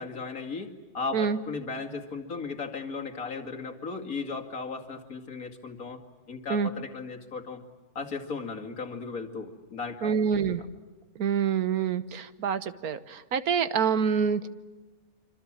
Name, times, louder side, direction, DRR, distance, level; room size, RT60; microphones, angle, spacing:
voice 1, 0.0-6.0 6.3-7.6 7.9-10.2 10.5-10.6, left 4 dB, 70° left, 2 dB, 2.9 m, -36 dB
voice 2, 10.0-10.6 11.2-14.5, right 7 dB, 80° right, 13 dB, 1.6 m, -26 dB
26.5 x 26.0 x 7.5 m, 1.3 s
omnidirectional pair, 1.5 m